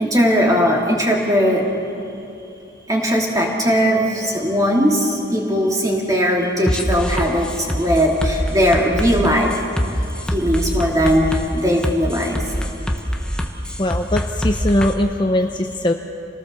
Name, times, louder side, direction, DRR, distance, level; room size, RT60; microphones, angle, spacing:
voice 1, 0.0-1.6 2.9-9.5 10.3-12.4, equal, 20° right, -1 dB, 2.9 m, -18 dB
sound 1, 6.7-14.9, equal, 5° left, 1.1 m, -24 dB
voice 2, 13.8-15.9, left 1 dB, 25° left, 4 dB, 0.7 m, -20 dB
27.5 x 18.5 x 6.9 m, 2.7 s
head